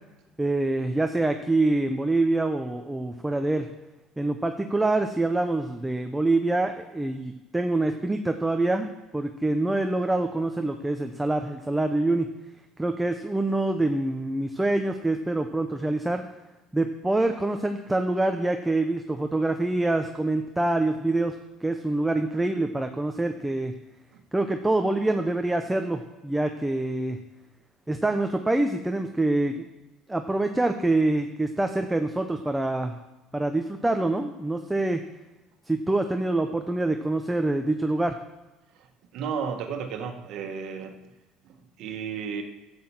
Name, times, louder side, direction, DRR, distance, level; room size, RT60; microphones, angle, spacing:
voice 1, 0.4-3.7 4.2-12.3 12.8-16.2 16.7-23.7 24.3-27.2 27.9-29.7 30.1-33.0 33.3-35.0 35.7-38.2, right 2 dB, 10° right, 6 dB, 0.8 m, -25 dB
voice 2, 39.1-40.9 41.5-42.4, right 6 dB, 65° right, 5 dB, 1.5 m, -33 dB
12.0 x 7.9 x 7.2 m, 1.1 s
supercardioid pair, 110°, 0 cm